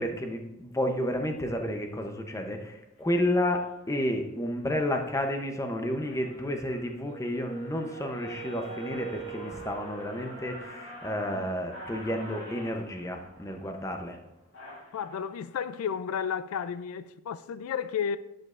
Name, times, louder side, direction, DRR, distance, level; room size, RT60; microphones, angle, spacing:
voice 1, 0.0-14.2, left 1 dB, 15° left, 0.6 m, -31 dB
sound 1, 3.0-3.2 3.8-4.1 4.5-5.0 5.4-5.5 5.8-15.2, left 1 dB, 55° left, 2.4 m, -46 dB
Wind instrument woodwind instrument, 7.0-10.9, right 11 dB, 50° right, 1.2 m, -44 dB
voice 2, 14.9-18.2, left 7 dB, 85° left, 0.3 m, -32 dB
12.0 x 5.2 x 2.4 m
head